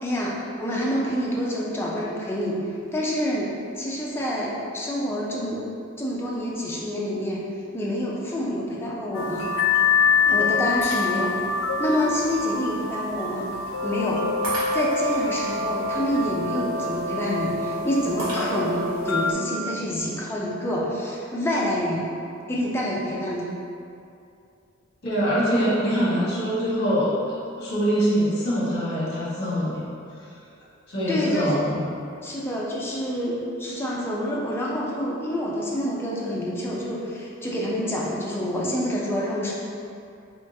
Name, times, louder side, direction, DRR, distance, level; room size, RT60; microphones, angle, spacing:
voice 1, 0.0-2.6 2.9-5.6 6.0-7.4 7.7-9.5 10.3-11.3 11.8-13.5 13.8-14.2 14.7-22.1 22.5-23.5 31.1-31.5 32.2-39.5, equal, 10° left, -5 dB, 0.4 m, -27 dB
sound 1, 9.1-19.3, left 4 dB, 80° left, 0.4 m, -25 dB
Shatter, 10.8-11.5 12.1-12.2 14.4-15.2 18.2-18.9, right 1 dB, 85° right, 1.1 m, -34 dB
voice 2, 25.0-29.8 30.9-31.8, equal, 50° left, -7 dB, 1.0 m, -24 dB
3.6 x 3.0 x 2.7 m, 2.5 s
head